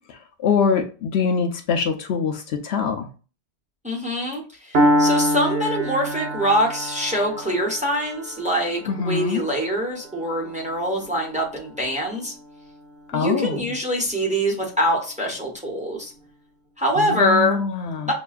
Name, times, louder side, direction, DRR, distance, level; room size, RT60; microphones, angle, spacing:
voice 1, 0.1-3.1 8.9-9.4 13.1-13.6 17.0-18.1, left 6 dB, 70° left, 5 dB, 0.8 m, -24 dB
voice 2, 3.8-12.3 13.1-16.1 16.8-17.6 18.1-18.2, equal, 5° right, -2 dB, 0.9 m, -24 dB
Piano, 4.7-12.7, equal, 65° right, 1.0 m, -26 dB
6.1 x 2.3 x 2.4 m, 0.35 s
omnidirectional pair, 1.1 m